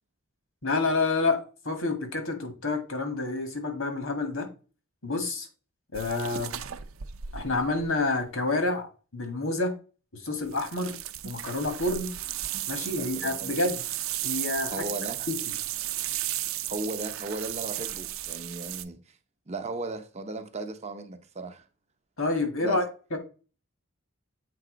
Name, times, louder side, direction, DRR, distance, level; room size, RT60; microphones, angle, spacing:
voice 1, 0.6-4.5 5.0-5.5 5.9-6.5 7.3-9.7 10.1-11.0 11.2-12.1 12.7-13.8 14.2-14.8 15.3-15.4 22.2-22.8 23.1-23.2, left 3 dB, 75° left, 2.0 m, -28 dB
sound 1, 5.9-8.2 10.5-18.8, right 13 dB, 75° right, 0.6 m, -35 dB
voice 2, 13.0-13.5 14.7-15.3 16.7-19.2 19.5-21.6 22.6-22.8, right 2 dB, 30° right, 0.7 m, -36 dB
7.7 x 3.7 x 5.0 m
head